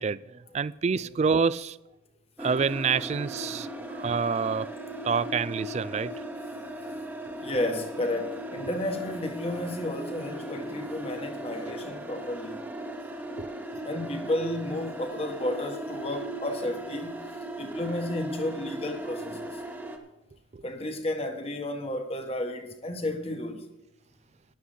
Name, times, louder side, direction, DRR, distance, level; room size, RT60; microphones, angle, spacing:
voice 1, 0.0-1.8 2.4-4.7 5.0-6.1 13.4-13.5 20.5-20.6, right 5 dB, 35° right, 0.3 m, -27 dB
sound 1, 2.4-20.0, right 1 dB, 10° right, 1.1 m, -38 dB
voice 2, 7.4-12.7 13.8-17.2 17.6-19.6 20.6-23.7, left 1 dB, 30° left, 1.3 m, -32 dB
14.0 x 11.5 x 3.9 m
head